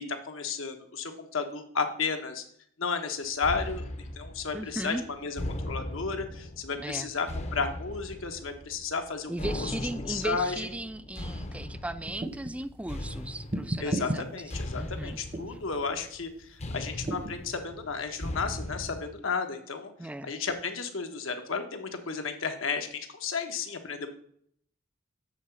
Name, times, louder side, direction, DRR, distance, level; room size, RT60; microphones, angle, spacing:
voice 1, 0.0-2.4 2.8-5.4 5.7-9.7 10.1-10.6 13.8-19.9 20.2-24.1, left 5 dB, 75° left, 6 dB, 1.1 m, -33 dB
sound 1, 3.4-19.0, left 1 dB, 35° left, 0.7 m, -39 dB
voice 2, 4.5-5.0 6.8-7.1 9.3-14.3 14.7-15.2 20.0-20.3, right 1 dB, 5° right, 13 dB, 0.3 m, -36 dB
sound 2, 12.0-12.6 13.5-14.2 15.3-15.6 17.1-17.4, right 1 dB, 30° right, 0.7 m, -32 dB
8.1 x 3.9 x 6.9 m, 0.65 s
head